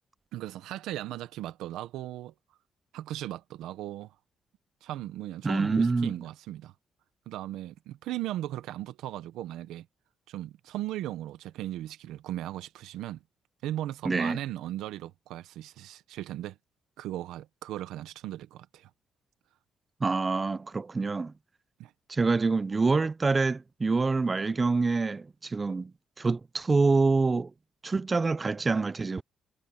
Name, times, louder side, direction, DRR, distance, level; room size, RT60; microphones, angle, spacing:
voice 1, 0.3-2.3 2.9-4.1 4.8-6.7 7.3-9.9 10.3-13.2 13.6-16.5 17.0-18.9 21.8-21.9, right 13 dB, 90° right, 1.0 m, -37 dB
voice 2, 5.4-6.1 14.0-14.4 20.0-21.3 22.1-25.9 26.2-27.5 27.8-29.2, right 3 dB, 30° right, 0.5 m, -26 dB
cardioid pair, 90°, 0 cm